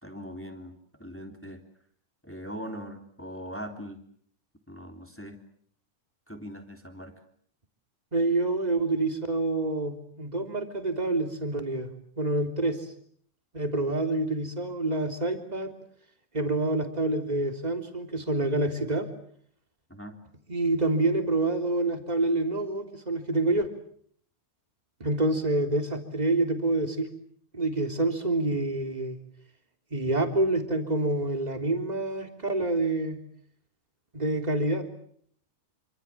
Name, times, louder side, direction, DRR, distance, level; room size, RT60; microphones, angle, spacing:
voice 1, 0.0-1.6 2.2-4.0 4.7-5.4 6.3-7.1 19.9-20.2, equal, 5° left, 4 dB, 3.1 m, -41 dB
voice 2, 8.1-11.9 12.2-12.9 13.5-15.7 16.3-19.1 20.5-23.7 25.0-27.1 27.5-29.2 29.9-33.2 34.1-34.8, right 2 dB, 15° right, 5 dB, 3.3 m, -27 dB
28.0 x 26.5 x 7.4 m, 0.62 s
omnidirectional pair, 3.5 m